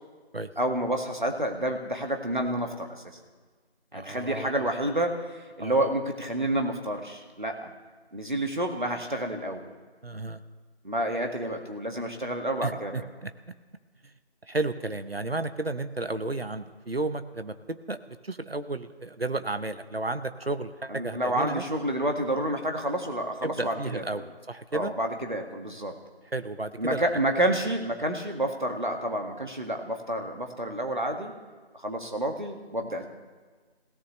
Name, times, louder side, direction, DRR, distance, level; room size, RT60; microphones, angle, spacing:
voice 1, 0.6-3.2 3.9-7.7 8.1-9.7 10.8-13.1 20.9-24.0 24.7-25.9 26.8-31.3 31.7-33.1, right 1 dB, 50° right, 3 dB, 2.0 m, -29 dB
voice 2, 3.9-4.7 5.6-5.9 10.0-10.4 12.6-13.3 14.5-18.0 18.2-21.6 23.4-24.9 26.3-27.0, right 2 dB, 65° right, 11 dB, 1.0 m, -33 dB
26.0 x 17.0 x 3.2 m, 1.4 s
figure-of-eight pair, 175°, 32 cm